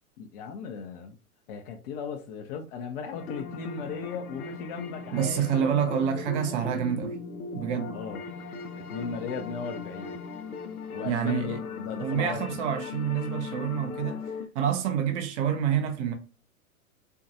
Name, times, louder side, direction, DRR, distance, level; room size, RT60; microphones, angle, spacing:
voice 1, 0.2-1.2 1.5-6.8 7.9-8.2 8.8-10.2 10.9-12.5, left 6 dB, 45° left, 0.7 m, -37 dB
sound 1, 3.1-14.5, left 4 dB, 80° left, 0.7 m, -38 dB
voice 2, 5.1-7.2 7.5-8.0 11.0-11.6 12.0-14.2 14.5-16.1, right 8 dB, 55° right, 0.8 m, -27 dB
4.5 x 2.3 x 2.7 m
hypercardioid pair, 110°, 43 cm